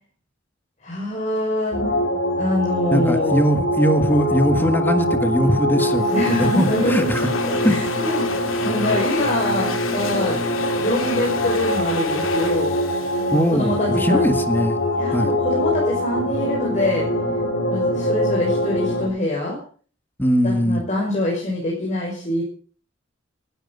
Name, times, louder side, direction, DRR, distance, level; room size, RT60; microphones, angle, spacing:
voice 1, 0.8-1.8 2.4-3.4 6.1-7.1 7.4-8.2 8.6-10.4 10.8-12.7 13.3-14.3 15.0-17.1 17.7-19.6 20.4-22.4, left 1 dB, 35° left, -3 dB, 5.8 m, -24 dB
sound 1, 1.7-19.1, left 1 dB, 60° left, 7.1 m, -23 dB
voice 2, 2.9-7.3 7.6-7.8 13.3-14.8 15.1-15.3 20.2-20.8, equal, 10° left, 8 dB, 1.6 m, -20 dB
Domestic sounds home sounds, 5.8-14.2, left 5 dB, 85° left, 3.1 m, -32 dB
19.5 x 13.0 x 5.5 m, 0.42 s
head